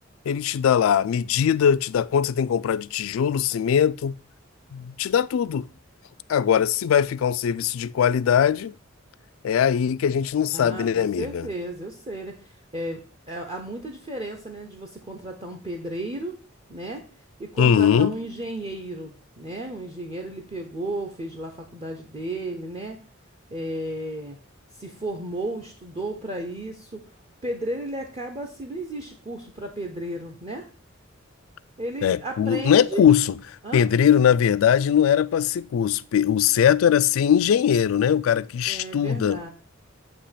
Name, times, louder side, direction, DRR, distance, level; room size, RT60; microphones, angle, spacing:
voice 1, 0.3-4.2 4.7-5.7 6.3-8.7 9.4-11.5 17.6-18.1 32.0-33.3 33.7-39.4, left 8 dB, 85° left, 0.3 m, -21 dB
voice 2, 10.5-13.0 13.3-16.3 16.7-17.0 17.4-23.0 23.5-24.4 24.7-27.0 27.4-30.7 31.8-33.1 33.6-33.8 38.7-39.5, right 1 dB, 30° right, 0.8 m, -34 dB
8.3 x 2.9 x 5.7 m
head